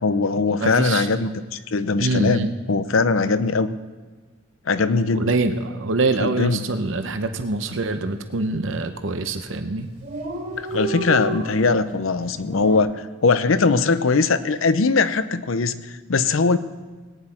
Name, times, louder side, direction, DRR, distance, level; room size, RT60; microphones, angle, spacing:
voice 1, 0.0-2.4 2.7-3.7 4.7-5.3 6.2-6.6 10.6-15.8 16.1-16.6, left 4 dB, 85° left, 13 dB, 0.7 m, -20 dB
voice 2, 0.6-1.1 2.0-2.5 5.1-9.9, right 3 dB, 70° right, 8 dB, 0.8 m, -24 dB
Dog, 6.6-6.8 7.1-7.2 7.5-8.1 8.8-9.0 9.3-9.4 9.6-9.7 9.9-12.8, right 2 dB, 45° right, 2.9 m, -32 dB
18.5 x 10.0 x 4.3 m, 1.3 s
head